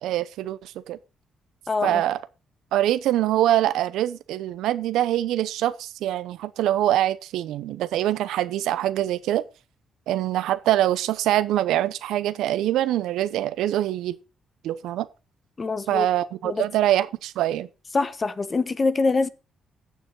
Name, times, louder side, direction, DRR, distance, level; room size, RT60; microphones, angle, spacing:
voice 1, 0.0-1.0 1.8-2.2 2.7-9.4 10.1-14.1 14.6-15.1 15.9-17.7, right 13 dB, 85° right, 0.8 m, -24 dB
voice 2, 1.7-2.0 15.6-16.1 16.4-16.6 17.9-19.3, left 3 dB, 30° left, 0.9 m, -24 dB
9.3 x 7.0 x 5.5 m
cardioid pair, 90°, 0 cm